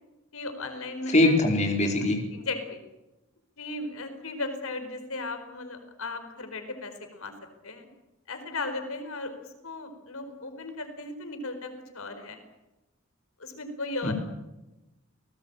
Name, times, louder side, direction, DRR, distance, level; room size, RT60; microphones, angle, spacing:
voice 1, 0.3-1.4 1.8-1.9 2.3-2.8 3.6-7.3 7.6-7.9 8.3-9.3 9.6-12.4 13.4-14.1, left 3 dB, 85° left, 7 dB, 4.6 m, -36 dB
voice 2, 1.1-2.2 14.0-14.1, left 1 dB, 35° left, 2 dB, 4.5 m, -22 dB
29.5 x 19.0 x 8.9 m, 1.0 s
head